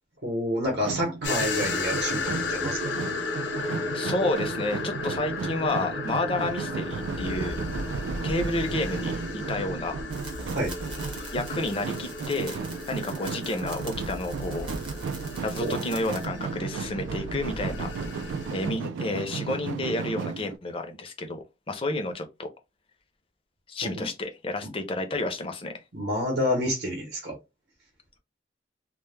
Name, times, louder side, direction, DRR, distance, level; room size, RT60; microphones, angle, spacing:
voice 1, 0.2-2.9 10.5-10.8 15.6-15.8 24.0-24.1 24.6-24.7 25.9-27.4, equal, 60° right, 0.7 m, -28 dB
sound 1, 0.6-20.6, right 5 dB, 85° right, 0.3 m, -35 dB
sound 2, 1.2-18.7, left 3 dB, 75° left, 0.6 m, -34 dB
voice 2, 3.3-7.6 8.2-10.0 11.1-14.7 15.4-17.9 18.5-22.5 23.7-25.7, left 2 dB, 30° left, 0.4 m, -31 dB
sound 3, 10.1-16.3, right 3 dB, 25° right, 0.6 m, -45 dB
2.1 x 2.0 x 3.1 m
head